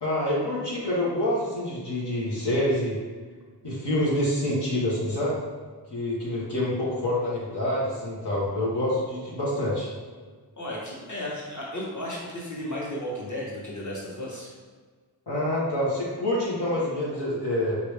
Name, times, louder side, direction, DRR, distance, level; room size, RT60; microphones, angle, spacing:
voice 1, 0.0-3.0 3.6-5.4 5.9-9.9 15.3-17.8, left 1 dB, 75° left, -7 dB, 1.2 m, -27 dB
voice 2, 10.6-14.5, left 1 dB, 45° left, -5 dB, 1.4 m, -34 dB
5.2 x 2.9 x 3.4 m, 1.5 s
wide cardioid pair, 45°, 40 cm